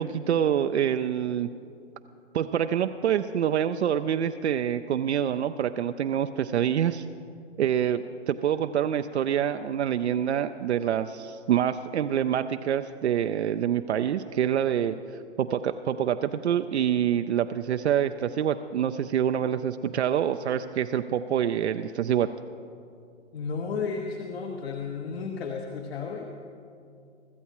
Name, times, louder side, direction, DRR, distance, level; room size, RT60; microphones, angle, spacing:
voice 1, 0.0-1.5 2.3-7.0 7.6-15.0 15.4-22.3, right 9 dB, 65° right, 8 dB, 0.6 m, -26 dB
voice 2, 23.3-26.2, left 5 dB, 55° left, 1 dB, 1.3 m, -33 dB
24.5 x 14.0 x 3.0 m, 2.5 s
figure-of-eight pair, 125°, 36 cm